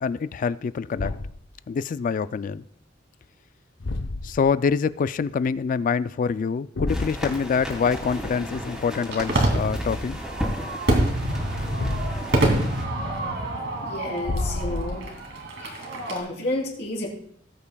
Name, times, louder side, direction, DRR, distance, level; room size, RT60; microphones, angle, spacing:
voice 1, 0.0-1.1 1.7-2.6 4.2-10.2, left 6 dB, 45° left, 15 dB, 0.3 m, -25 dB
Thump thud, 0.9-1.5 3.8-4.5 6.8-7.2 9.5-10.0 11.8-12.4 14.2-15.2, left 2 dB, 75° left, 0.6 m, -30 dB
sound 1, 6.9-12.8, equal, ahead, 2.8 m, -35 dB
Fireworks, 7.8-16.2, right 1 dB, 65° right, 2.5 m, -27 dB
voice 2, 13.8-15.2 15.6-17.1, left 1 dB, 60° left, -2 dB, 3.4 m, -31 dB
19.0 x 8.6 x 2.3 m, 0.66 s
head